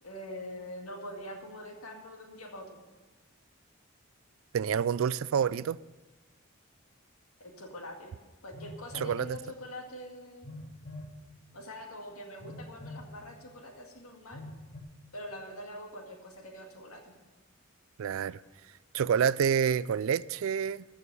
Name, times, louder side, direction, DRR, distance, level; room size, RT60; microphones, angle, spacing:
voice 1, 0.0-2.8 7.4-8.1 8.4-10.5 11.5-14.4 15.1-17.2, left 1 dB, 85° left, 2.1 m, -44 dB
voice 2, 4.5-5.8 8.9-9.4 18.0-18.4 18.9-20.8, right 7 dB, 70° right, 0.3 m, -28 dB
Telephone, 8.5-9.2 10.4-11.1 12.4-13.1 14.3-14.8, left 1 dB, 40° left, 1.5 m, -44 dB
14.5 x 6.5 x 6.8 m
head